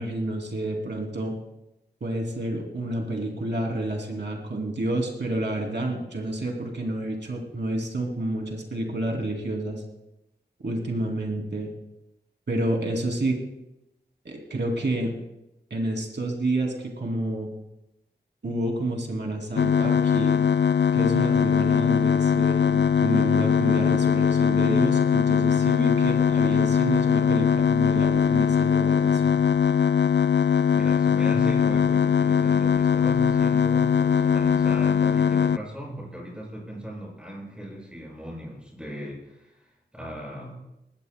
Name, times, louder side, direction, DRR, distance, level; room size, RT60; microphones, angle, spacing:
voice 1, 0.0-1.3 2.0-9.8 10.6-11.7 12.5-13.4 14.2-15.1 15.7-17.5 18.4-20.4 20.9-29.3, right 1 dB, 80° right, 0 dB, 2.8 m, -29 dB
sound 1, 19.6-35.6, left 7 dB, 75° left, 0.4 m, -21 dB
voice 2, 30.7-39.5 39.9-40.5, right 1 dB, 5° right, -3 dB, 6.6 m, -37 dB
20.0 x 17.0 x 2.2 m, 0.89 s
wide cardioid pair, 65°, 18 cm